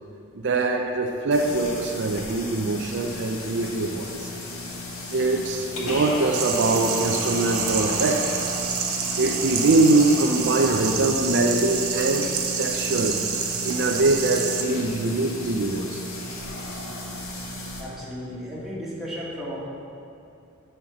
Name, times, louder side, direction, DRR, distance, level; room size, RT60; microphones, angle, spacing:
voice 1, 0.3-4.3 5.1-8.4 9.2-13.2 13.6-16.0, right 2 dB, 55° right, 2 dB, 0.5 m, -23 dB
sound 1, 1.3-17.8, left 1 dB, 90° left, 1.6 m, -34 dB
sound 2, 6.3-14.6, right 7 dB, 85° right, 0.9 m, -28 dB
voice 2, 17.8-19.7, equal, ahead, -8 dB, 1.8 m, -34 dB
8.3 x 4.5 x 7.1 m, 2.5 s
head